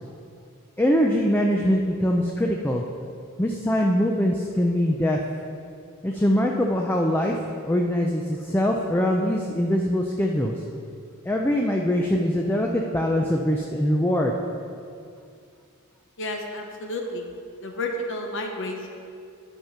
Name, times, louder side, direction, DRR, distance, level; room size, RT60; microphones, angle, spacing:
voice 1, 0.8-2.8 3.4-5.2 6.0-7.4 7.7-10.5 11.3-14.3, equal, 10° left, 0 dB, 0.4 m, -23 dB
voice 2, 16.2-17.3 17.6-18.9, left 1 dB, 55° left, 3 dB, 1.0 m, -31 dB
11.0 x 5.1 x 5.7 m, 2.4 s
head